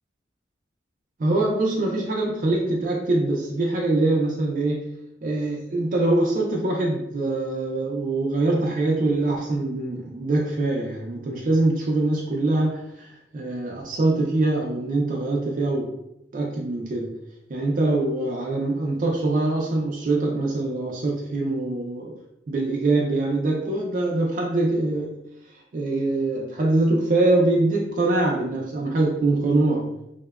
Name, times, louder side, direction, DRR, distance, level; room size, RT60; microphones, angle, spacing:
voice 1, 1.2-4.9 5.2-15.9 16.3-17.2 17.5-22.2 22.5-25.2 25.5-29.9, right 2 dB, 50° right, -2 dB, 0.4 m, -23 dB
2.7 x 2.1 x 2.2 m, 0.83 s
head